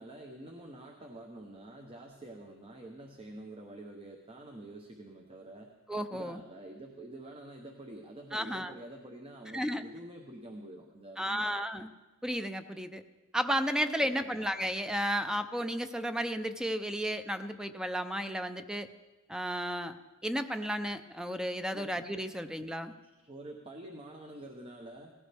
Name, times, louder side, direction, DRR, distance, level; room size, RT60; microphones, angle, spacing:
voice 1, 0.0-5.7 6.1-11.6 14.0-14.4 21.7-22.0 23.2-25.1, right 1 dB, 25° right, 2 dB, 0.9 m, -47 dB
voice 2, 5.9-6.4 8.3-8.7 9.5-9.8 11.2-11.9 12.2-13.0 13.3-18.9 19.3-20.0 20.2-22.9, equal, 5° right, 9 dB, 0.5 m, -33 dB
17.5 x 16.0 x 3.4 m, 1.2 s
head